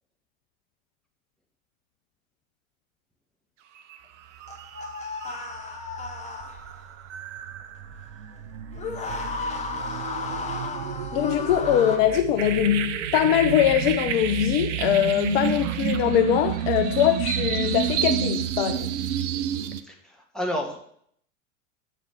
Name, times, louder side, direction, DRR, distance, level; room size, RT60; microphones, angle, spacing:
sound 1, 3.8-4.0 4.3-19.8, right 9 dB, 60° right, 0.7 m, -30 dB
sound 2, 4.5-6.9 8.7-12.0, left 3 dB, 15° left, 1.1 m, -34 dB
voice 1, 11.1-18.9, left 11 dB, 50° left, 0.6 m, -22 dB
voice 2, 19.8-20.8, equal, ahead, 1.6 m, -30 dB
8.2 x 4.2 x 6.6 m
figure-of-eight pair, 85°, 40 cm